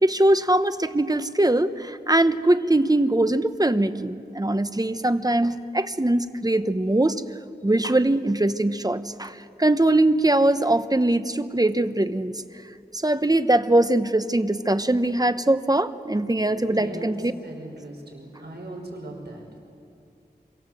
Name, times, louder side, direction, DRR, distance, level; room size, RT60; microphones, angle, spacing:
voice 1, 0.0-7.2 7.6-12.3 12.9-17.3, right 1 dB, 20° right, 11 dB, 1.0 m, -22 dB
voice 2, 16.4-17.1 17.4-19.6, right 2 dB, 80° right, 0 dB, 5.3 m, -39 dB
27.0 x 25.0 x 7.8 m, 2.5 s
wide cardioid pair, 50°, 17 cm